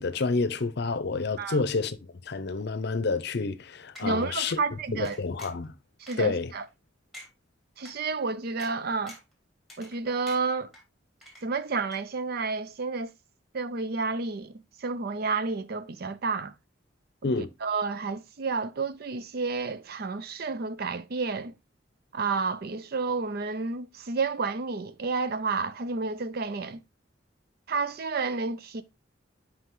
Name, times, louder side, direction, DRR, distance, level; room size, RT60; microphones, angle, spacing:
voice 1, 0.0-2.0 2.3-4.6 4.9-5.7 6.2-6.5 17.2-17.5, left 3 dB, 60° left, 0.6 m, -29 dB
sound 1, 3.9-4.1 4.4-4.6 5.0-5.6 6.1-6.2 6.7-6.8 7.1-7.3 7.8-7.9 8.6-8.7 9.1-9.3 9.7-10.0 10.3-10.8 11.2-11.7 11.9-12.0, equal, ahead, 2.1 m, -47 dB
voice 2, 4.0-5.2 6.0-6.6 7.8-9.2 9.8-10.7 11.4-13.1 13.5-16.5 17.2-17.3 17.6-21.5 22.1-26.8 27.7-28.8, right 4 dB, 55° right, 0.5 m, -30 dB
5.8 x 5.1 x 3.7 m
head